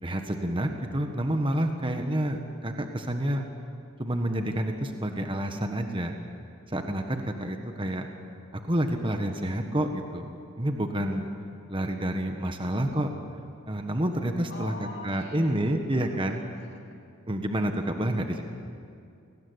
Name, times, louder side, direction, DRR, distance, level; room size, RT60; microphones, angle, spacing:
voice 1, 0.0-3.4 4.0-6.1 6.7-8.1 8.7-10.3 10.6-11.3 11.7-13.1 13.7-14.7 15.0-16.4 17.3-18.4, right 1 dB, 25° right, 5 dB, 1.4 m, -28 dB
voice 2, 14.5-17.0, left 3 dB, 50° left, 1 dB, 3.0 m, -45 dB
28.0 x 19.5 x 8.1 m, 2.4 s
head